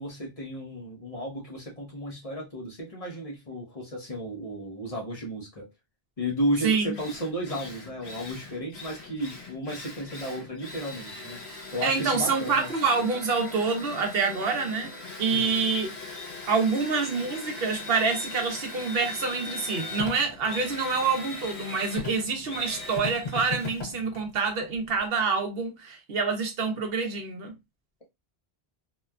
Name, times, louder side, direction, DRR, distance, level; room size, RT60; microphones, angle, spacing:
voice 1, 0.0-5.7 6.2-11.4 11.7-12.7 15.3-15.5, equal, 35° left, 0.9 m, -33 dB
Drill, 6.5-6.6 6.9-25.1, left 3 dB, 80° left, 1.3 m, -39 dB
voice 2, 6.6-6.9 11.8-14.9 15.2-15.9 16.5-27.5, right 4 dB, 70° right, 0.9 m, -27 dB
2.9 x 2.3 x 2.2 m
omnidirectional pair, 1.1 m